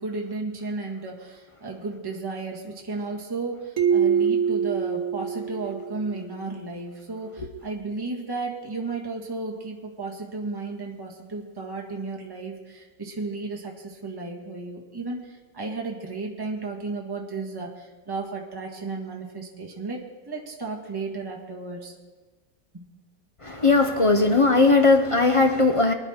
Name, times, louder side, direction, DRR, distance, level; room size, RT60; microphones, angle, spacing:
voice 1, 0.0-20.0 20.3-21.9 22.7-22.8, right 3 dB, 15° right, 1.7 m, -34 dB
sound 1, 3.8-6.3, right 7 dB, 50° right, 1.8 m, -24 dB
voice 2, 23.4-25.9, left 3 dB, 35° left, 0.5 m, -18 dB
24.0 x 10.5 x 4.4 m
omnidirectional pair, 1.9 m